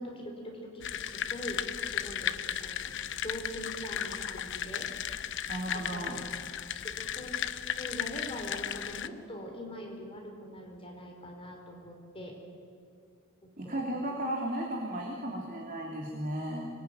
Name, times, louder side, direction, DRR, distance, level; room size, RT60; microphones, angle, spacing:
voice 1, 0.0-2.9 3.2-4.9 5.7-6.2 6.6-7.3 7.8-12.4 13.4-13.8, equal, 25° left, 1 dB, 4.5 m, -43 dB
sound 1, 0.8-9.1, left 9 dB, 60° left, 0.8 m, -35 dB
voice 2, 5.5-6.2 13.6-16.7, right 1 dB, 40° right, -1 dB, 3.1 m, -35 dB
25.5 x 20.5 x 9.5 m, 2.3 s
head